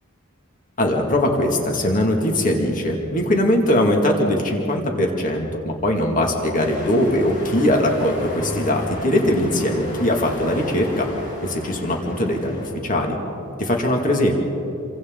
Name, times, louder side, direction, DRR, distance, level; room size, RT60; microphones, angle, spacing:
voice 1, 0.8-11.1 11.4-12.5 12.8-13.2 13.6-14.3, left 1 dB, 40° left, 1 dB, 2.3 m, -20 dB
sound 1, 6.6-12.7, left 1 dB, 85° left, 6.3 m, -35 dB
29.5 x 23.5 x 3.9 m, 2.9 s
head